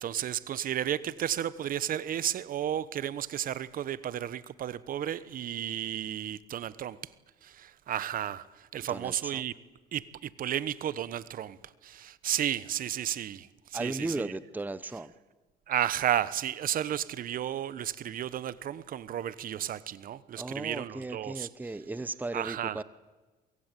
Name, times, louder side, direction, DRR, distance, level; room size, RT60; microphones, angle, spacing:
voice 1, 0.0-7.1 7.4-9.5 9.9-14.3 15.7-21.5 22.3-22.8, right 10 dB, 55° right, 1.1 m, -33 dB
voice 2, 8.9-9.4 13.7-15.1 20.4-22.8, right 2 dB, 10° right, 0.9 m, -36 dB
23.5 x 23.0 x 9.2 m
cardioid pair, 110°, 17 cm